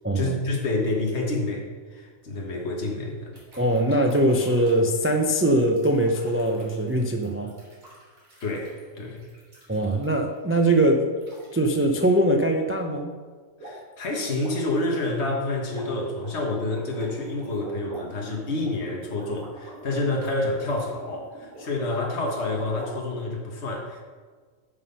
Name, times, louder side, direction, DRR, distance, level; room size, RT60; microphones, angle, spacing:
voice 1, 0.2-3.3 8.4-9.2 13.6-24.0, left 2 dB, 50° left, -1 dB, 1.7 m, -28 dB
Water Bubbles and Splashes, 3.3-10.4 11.2-11.5 11.8-12.0 13.6-13.9 14.2-22.9, equal, 70° right, 3.9 m, -46 dB
voice 2, 3.6-7.5 9.7-11.1 11.5-13.1, right 1 dB, 20° right, 3 dB, 0.4 m, -22 dB
10.5 x 5.8 x 5.6 m, 1.5 s
omnidirectional pair, 1.5 m